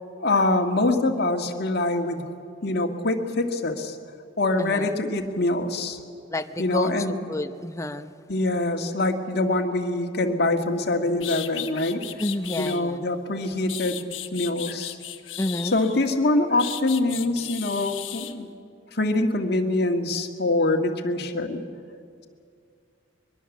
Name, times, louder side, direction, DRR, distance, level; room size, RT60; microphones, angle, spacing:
voice 1, 0.2-2.3 2.6-4.0 4.4-6.0 6.6-7.2 8.3-12.0 12.6-15.0 15.7-18.5 18.9-21.6, left 2 dB, 55° left, 3 dB, 1.9 m, -24 dB
voice 2, 4.6-5.0 6.3-6.9 7.3-8.1 12.2-13.1 15.4-15.8, left 1 dB, 15° left, 9 dB, 0.7 m, -29 dB
sound 1, 10.8-10.9 11.2-12.8 13.4-16.1 16.6-18.3, left 12 dB, 80° left, 1.1 m, -36 dB
22.5 x 22.5 x 7.3 m, 2.4 s
head